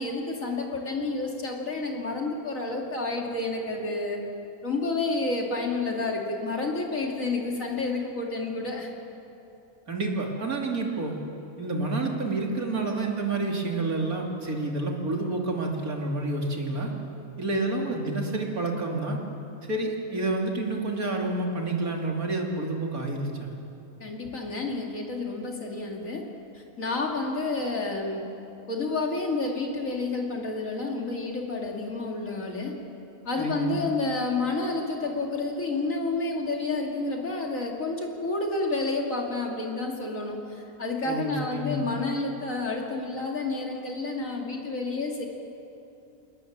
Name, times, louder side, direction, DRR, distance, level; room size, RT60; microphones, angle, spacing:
voice 1, 0.0-4.2 4.6-8.9 24.0-26.3 26.5-28.3 28.7-32.8 33.2-45.3, left 3 dB, 65° left, 0 dB, 3.1 m, -30 dB
voice 2, 9.9-11.2 11.6-16.9 17.4-19.2 19.6-23.6 33.4-33.8 41.0-41.9, right 2 dB, 80° right, 0 dB, 3.3 m, -29 dB
28.0 x 19.0 x 7.5 m, 2.8 s
omnidirectional pair, 1.5 m